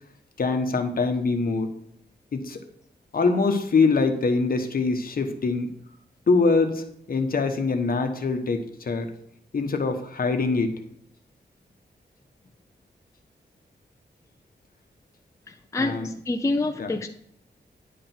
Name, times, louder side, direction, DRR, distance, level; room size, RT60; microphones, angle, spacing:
voice 1, 0.4-1.7 2.3-2.6 3.1-5.7 6.3-9.1 9.5-10.8 15.8-16.1 16.8-16.9, left 4 dB, 55° left, 5 dB, 1.2 m, -24 dB
voice 2, 15.5-17.1, left 2 dB, 15° left, 5 dB, 0.5 m, -27 dB
10.0 x 5.1 x 5.9 m, 0.72 s
wide cardioid pair, 145°, 18 cm